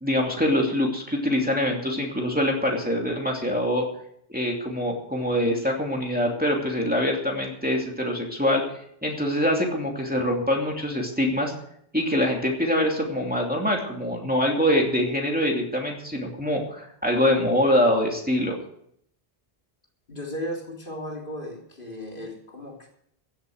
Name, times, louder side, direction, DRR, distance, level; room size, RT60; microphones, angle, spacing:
voice 1, 0.0-3.8 4.3-8.6 9.0-11.5 11.9-18.6, left 1 dB, 10° right, -1 dB, 2.7 m, -24 dB
voice 2, 20.1-22.9, equal, 55° left, -1 dB, 3.5 m, -35 dB
16.0 x 8.4 x 7.9 m, 0.70 s
omnidirectional pair, 1.0 m